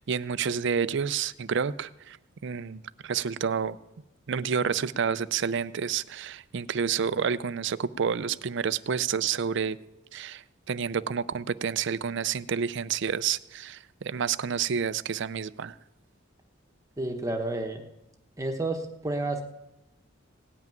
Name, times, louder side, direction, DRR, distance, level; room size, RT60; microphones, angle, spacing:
voice 1, 0.0-2.2 2.4-3.8 4.3-9.8 10.1-15.7, right 6 dB, 65° right, 0.5 m, -29 dB
voice 2, 17.0-17.8 18.4-19.4, right 2 dB, 15° right, 1.0 m, -30 dB
17.5 x 5.9 x 9.1 m
head